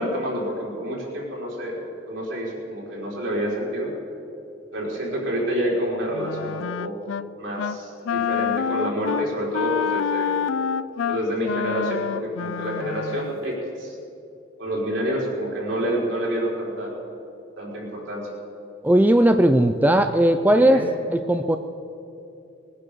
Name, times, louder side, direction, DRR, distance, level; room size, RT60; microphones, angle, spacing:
voice 1, 0.0-3.9 4.7-7.0 7.4-10.4 11.1-13.9 14.6-16.9 17.6-18.3 20.5-20.9, equal, 65° right, -3 dB, 4.3 m, -28 dB
Wind instrument woodwind instrument, 6.1-7.3 7.6-7.8 8.1-13.3, left 7 dB, 90° left, 0.4 m, -27 dB
voice 2, 18.8-20.8 21.1-21.6, right 1 dB, 10° right, 8 dB, 0.4 m, -17 dB
20.0 x 9.8 x 6.7 m, 2.8 s
head